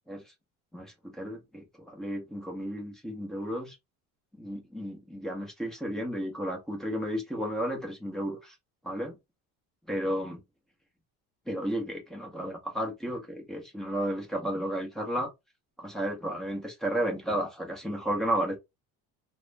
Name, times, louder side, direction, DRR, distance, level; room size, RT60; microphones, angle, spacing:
voice 1, 0.7-3.8 4.4-8.5 8.8-9.2 9.9-10.4 11.5-15.3 15.8-18.6, equal, ahead, 0.6 m, -33 dB
2.4 x 2.0 x 3.1 m
cardioid pair, 165°, 36 cm